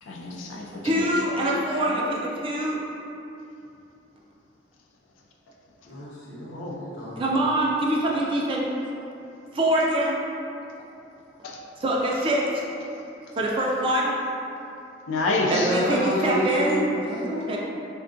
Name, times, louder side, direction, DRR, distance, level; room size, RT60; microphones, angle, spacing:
voice 1, 0.0-2.0 6.5-6.8 9.8-9.9 11.4-11.6 12.8-12.9 13.4-13.5 15.1-15.8, left 2 dB, 90° left, -1 dB, 0.3 m, -30 dB
voice 2, 0.8-2.8 7.2-8.7 9.5-10.2 11.8-12.4 13.4-14.2 15.5-16.8 17.5-17.6, right 1 dB, 30° right, -3 dB, 0.3 m, -24 dB
voice 3, 5.9-7.3 15.4-17.6, equal, 65° left, -7 dB, 0.7 m, -30 dB
3.4 x 2.2 x 2.5 m, 2.8 s
head